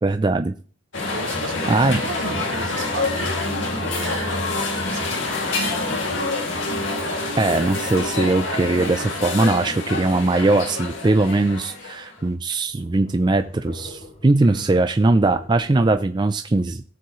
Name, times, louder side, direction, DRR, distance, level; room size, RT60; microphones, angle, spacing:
voice 1, 0.0-0.5 1.7-2.0 7.4-16.8, right 2 dB, 20° right, 8 dB, 0.4 m, -20 dB
sound 1, 0.9-12.2, left 2 dB, 70° left, 2.4 m, -26 dB
voice 2, 1.1-6.0 14.4-14.8, right 3 dB, 70° right, 3 dB, 2.1 m, -35 dB
sound 2, 11.8-11.9 12.2-12.3 12.7-16.0, left 1 dB, 45° left, 4.6 m, -44 dB
18.0 x 7.1 x 3.1 m, 0.41 s
head